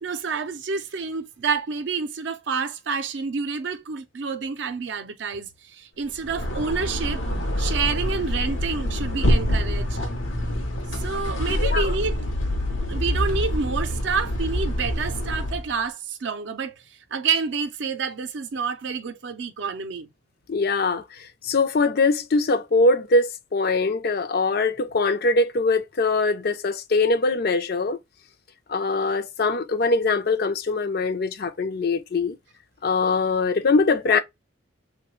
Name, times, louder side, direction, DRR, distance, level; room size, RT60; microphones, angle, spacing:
voice 1, 0.0-7.2 7.6-10.0 11.0-12.2 12.9-16.7 17.1-20.1, right 5 dB, 65° right, 0.5 m, -28 dB
sound 1, 6.1-15.7, equal, 80° left, 0.8 m, -26 dB
voice 2, 11.5-11.9 20.5-28.0 28.7-32.4 32.8-34.2, left 3 dB, 55° left, 0.4 m, -22 dB
3.1 x 2.2 x 2.9 m
head